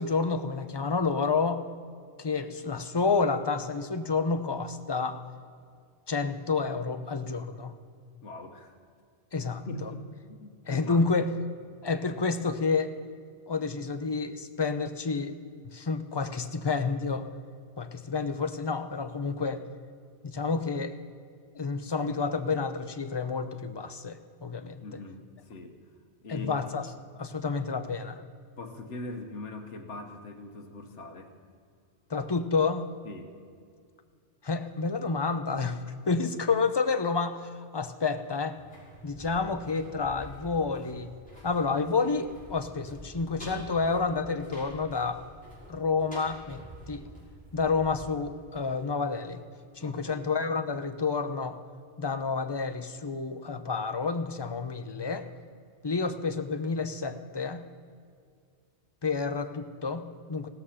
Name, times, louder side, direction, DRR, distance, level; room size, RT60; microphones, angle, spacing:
voice 1, 0.0-1.6 2.2-5.2 6.1-7.7 9.3-9.9 10.7-11.3 11.8-12.9 13.5-15.4 15.7-17.3 17.8-19.6 20.2-20.9 21.5-24.9 26.3-26.9 27.2-28.2 32.1-32.9 34.4-38.6 39.0-41.1 41.4-45.2 45.7-47.1 47.5-49.4 49.8-51.6 52.0-55.3 55.8-57.7 59.0-60.5, left 4 dB, 25° left, 9 dB, 0.6 m, -29 dB
voice 2, 8.2-8.8 9.6-11.1 24.8-25.8 26.2-26.6 28.6-31.3 33.0-33.3 49.8-50.3, left 2 dB, 80° left, 3 dB, 1.5 m, -42 dB
sound 1, 38.5-49.3 49.6-49.7, equal, 5° left, 5.4 m, -48 dB
16.5 x 13.0 x 5.8 m, 2.2 s
omnidirectional pair, 1.2 m